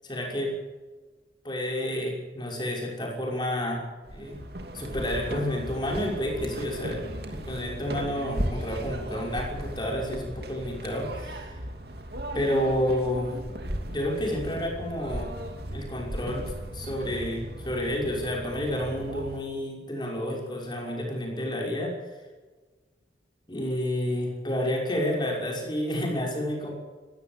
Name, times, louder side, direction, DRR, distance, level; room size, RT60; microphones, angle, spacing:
voice 1, 0.0-0.5 1.4-3.8 4.1-4.4 4.7-11.5 12.3-13.3 13.6-15.3 15.7-21.9 23.5-26.7, left 1 dB, 25° left, 0 dB, 5.9 m, -30 dB
sound 1, 4.0-19.4, right 1 dB, 60° right, 2.8 m, -36 dB
20.5 x 17.0 x 8.1 m, 1.3 s
head